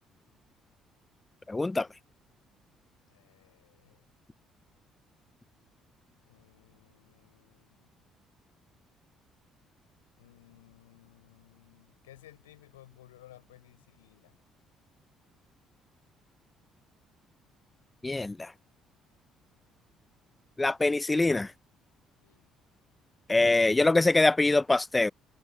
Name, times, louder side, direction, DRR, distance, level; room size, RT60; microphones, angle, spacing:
voice 1, 1.5-1.9 18.0-18.5 20.6-21.5 23.3-25.1, left 2 dB, 15° left, 0.5 m, -24 dB
voice 2, 3.1-4.0 6.2-7.9 10.2-14.4 22.2-22.5, left 14 dB, 75° left, 5.1 m, -57 dB
figure-of-eight pair, 50°, 0 cm